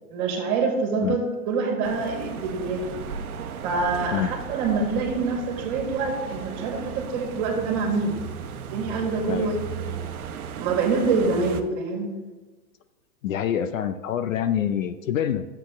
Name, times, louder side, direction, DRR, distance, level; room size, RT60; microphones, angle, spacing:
voice 1, 0.1-2.9 3.6-10.1 10.6-12.1, right 4 dB, 30° right, 1 dB, 1.9 m, -26 dB
sound 1, 1.8-11.6, right 7 dB, 70° right, 1.0 m, -36 dB
voice 2, 13.2-15.5, left 9 dB, 60° left, 10 dB, 0.7 m, -26 dB
12.0 x 7.7 x 3.6 m, 1.2 s
hypercardioid pair, 160°, 45 cm